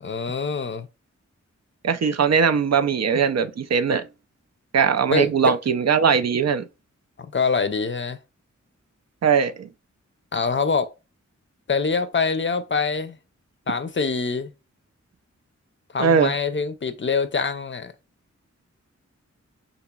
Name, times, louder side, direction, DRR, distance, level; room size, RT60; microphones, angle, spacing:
voice 1, 0.0-0.9 5.1-5.5 7.2-8.2 10.3-10.9 11.7-13.2 13.7-14.5 15.9-17.9, left 4 dB, 40° left, 0.5 m, -24 dB
voice 2, 1.8-4.0 4.7-6.6 9.2-9.7 16.0-16.3, right 6 dB, 60° right, 0.4 m, -20 dB
4.0 x 2.9 x 2.2 m
wide cardioid pair, 60°, 30 cm